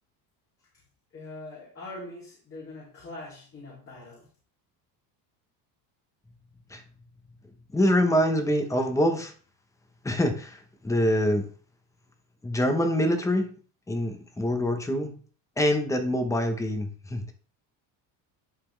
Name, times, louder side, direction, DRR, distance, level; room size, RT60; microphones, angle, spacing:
voice 1, 1.1-4.2, left 2 dB, 30° left, -6 dB, 3.0 m, -42 dB
voice 2, 7.7-9.3 10.0-11.5 12.4-13.5 13.9-15.2 15.6-17.3, equal, 5° left, 5 dB, 1.0 m, -25 dB
11.5 x 4.2 x 3.4 m, 0.42 s
cardioid pair, 135°, 43 cm